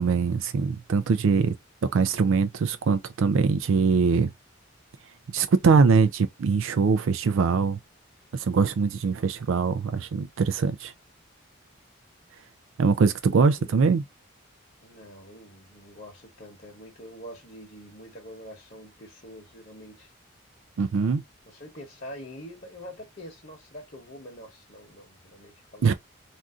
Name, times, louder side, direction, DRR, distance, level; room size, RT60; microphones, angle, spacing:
voice 1, 0.0-1.5 1.8-4.3 5.3-7.8 8.3-10.9 12.8-14.0 20.8-21.2 25.8-25.9, right 5 dB, 70° right, 0.4 m, -22 dB
voice 2, 14.8-20.1 21.5-25.9, equal, 45° left, 1.1 m, -45 dB
3.6 x 2.6 x 2.3 m
head